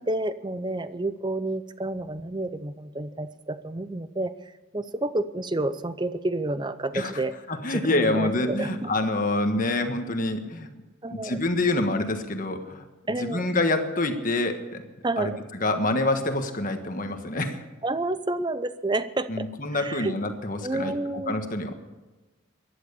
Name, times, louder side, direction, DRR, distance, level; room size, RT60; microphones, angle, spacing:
voice 1, 0.0-7.4 7.7-8.9 11.0-11.4 13.1-13.5 15.0-15.4 17.8-20.1 20.6-21.4, right 2 dB, 20° right, 13 dB, 0.6 m, -30 dB
voice 2, 7.5-10.7 11.1-12.8 13.2-14.8 15.2-15.3 15.6-17.6 19.3-20.9 21.3-21.7, left 2 dB, 40° left, 6 dB, 1.4 m, -26 dB
15.0 x 11.0 x 6.9 m, 1.2 s
head